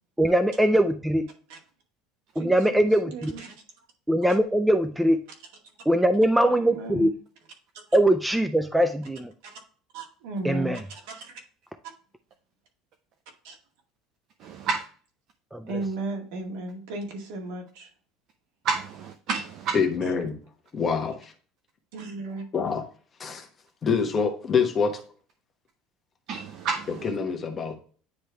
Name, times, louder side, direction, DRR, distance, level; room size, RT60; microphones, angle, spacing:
voice 1, 0.2-1.3 2.4-3.3 4.1-5.2 5.9-7.1 7.9-9.3 10.4-10.8 15.5-15.7, right 1 dB, 5° right, 9 dB, 0.4 m, -22 dB
voice 2, 2.4-3.6 4.3-4.4 6.5-7.1 7.9-8.0 9.4-9.6 9.9-11.4 11.8-11.9 13.4-13.6 15.7-17.9 20.0-20.1 21.9-22.5, right 2 dB, 80° right, 2 dB, 2.0 m, -36 dB
voice 3, 14.4-14.8 18.6-19.8 26.3-26.9, right 5 dB, 45° right, 5 dB, 0.6 m, -29 dB
voice 4, 19.7-20.3 20.7-21.2 22.5-22.8 23.2-23.5 23.8-25.0 27.0-27.8, left 5 dB, 25° left, 4 dB, 1.1 m, -25 dB
9.6 x 3.2 x 3.3 m, 0.42 s
cardioid pair, 155°, 0 cm